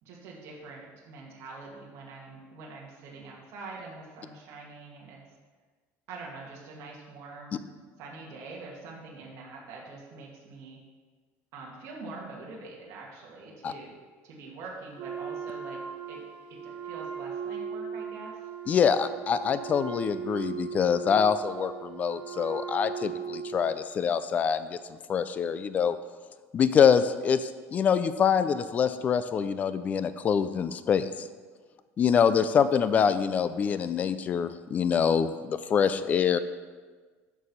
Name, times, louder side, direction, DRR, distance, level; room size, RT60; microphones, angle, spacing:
voice 1, 0.0-5.2 6.1-7.7 8.0-10.8 11.5-14.0 14.2-15.8 16.1-16.2 16.5-18.4, right 3 dB, 50° right, -3 dB, 2.2 m, -44 dB
Wind instrument woodwind instrument, 15.0-23.8, right 7 dB, 75° right, 2.0 m, -38 dB
voice 2, 18.7-24.8 25.1-26.0 26.5-31.3 32.0-36.4, left 7 dB, 25° left, 13 dB, 0.4 m, -25 dB
13.0 x 4.7 x 5.5 m, 1.5 s
cardioid pair, 170°, 6 cm